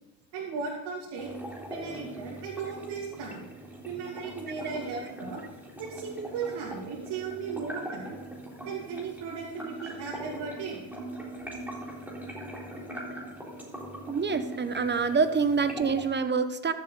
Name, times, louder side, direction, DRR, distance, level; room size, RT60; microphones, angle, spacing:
voice 1, 0.3-1.3 1.7-3.4 3.8-5.4 5.8-8.2 8.6-10.8, right 5 dB, 70° right, -4 dB, 2.6 m, -36 dB
sound 1, 1.2-16.1, right 1 dB, 5° right, 3.6 m, -41 dB
voice 2, 14.1-16.7, right 5 dB, 25° right, 10 dB, 1.1 m, -26 dB
14.0 x 7.5 x 4.0 m, 1.2 s
supercardioid pair, 85°, 42 cm